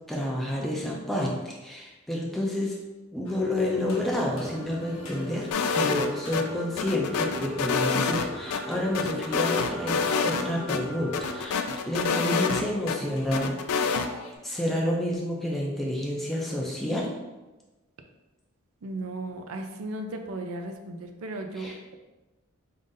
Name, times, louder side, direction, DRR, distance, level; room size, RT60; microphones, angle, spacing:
voice 1, 0.1-2.8 3.1-5.5 5.7-14.1 14.4-17.1 21.6-21.7, left 1 dB, ahead, -3 dB, 0.5 m, -29 dB
sound 1, 3.3-14.4, left 1 dB, 70° left, 0.7 m, -48 dB
sound 2, 3.3-11.4, left 1 dB, 35° right, 0.8 m, -41 dB
sound 3, 5.5-6.4 6.8-8.6 8.9-10.4 10.7-10.8 11.1-13.0 13.3-14.1, left 5 dB, 90° left, 0.4 m, -27 dB
voice 2, 18.8-22.0, right 2 dB, 75° right, 5 dB, 0.5 m, -36 dB
3.8 x 2.6 x 3.8 m, 1.1 s
head